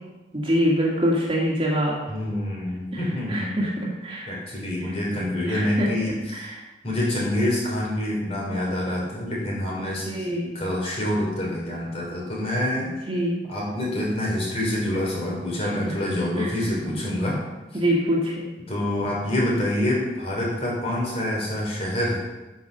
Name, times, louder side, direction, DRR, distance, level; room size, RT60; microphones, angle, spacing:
voice 1, 0.3-2.0 3.3-3.7 4.0-4.3 5.5-5.9 6.3-6.6 9.8-10.6 12.8-13.3 16.4-16.5 17.7-18.4, equal, 30° right, -4 dB, 2.2 m, -24 dB
voice 2, 2.1-3.6 4.3-6.5 6.8-12.9 13.5-17.4 17.7-17.8 18.7-22.2, left 1 dB, 35° left, -4 dB, 3.3 m, -26 dB
8.2 x 6.5 x 6.8 m, 1.1 s
head